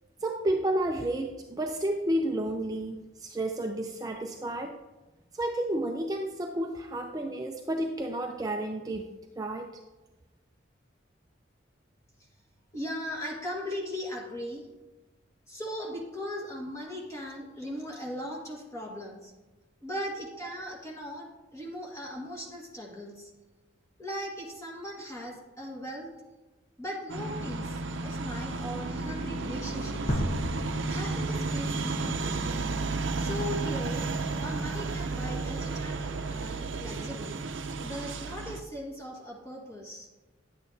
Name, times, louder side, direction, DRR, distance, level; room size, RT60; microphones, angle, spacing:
voice 1, 0.2-4.8 5.4-9.1 9.4-9.7, right 1 dB, 20° right, 2 dB, 0.4 m, -31 dB
voice 2, 12.7-14.7 15.5-19.3 19.8-23.3 24.0-26.1 26.8-30.2 30.9-32.4 33.2-34.1 34.4-37.4 37.8-40.1, equal, 15° left, -2 dB, 1.7 m, -38 dB
sound 1, 27.1-38.6, right 3 dB, 75° right, 0.6 m, -32 dB
sound 2, 30.1-33.0, equal, 40° left, 1.1 m, -34 dB
10.0 x 8.5 x 2.8 m, 1.2 s
head